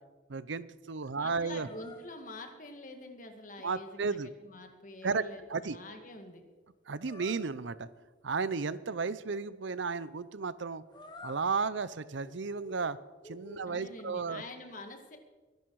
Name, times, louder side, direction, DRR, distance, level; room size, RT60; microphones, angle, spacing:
voice 1, 0.3-1.7 3.6-4.3 5.0-5.8 6.9-7.9 8.2-10.8 11.2-13.0 13.2-14.4, right 4 dB, 75° right, 16 dB, 0.7 m, -34 dB
voice 2, 1.2-6.4 13.7-15.2, left 2 dB, 40° left, 5 dB, 1.9 m, -46 dB
sound 1, 1.6-2.1 7.0-7.4 10.9-11.5 11.9-12.8 13.2-14.0, left 2 dB, 25° left, 1.7 m, -49 dB
22.5 x 12.0 x 4.8 m, 1.3 s
head